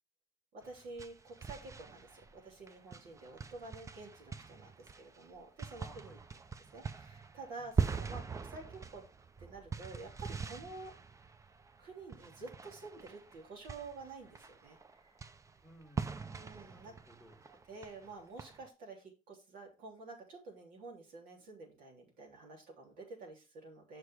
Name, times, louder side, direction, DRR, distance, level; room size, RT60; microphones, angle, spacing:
voice 1, 0.5-6.2 6.7-9.1 9.4-10.9 11.8-15.2 16.3-17.0 17.5-24.0, right 3 dB, 85° right, 0 dB, 3.4 m, -50 dB
sound 1, 0.6-18.7, right 5 dB, 20° right, 0.6 m, -42 dB
voice 2, 5.8-6.2 7.6-7.7 15.6-16.3 16.7-17.4 18.0-18.1, equal, ahead, 2 dB, 1.8 m, -59 dB
6.6 x 6.2 x 4.8 m, 0.29 s
cardioid pair, 130°, 14 cm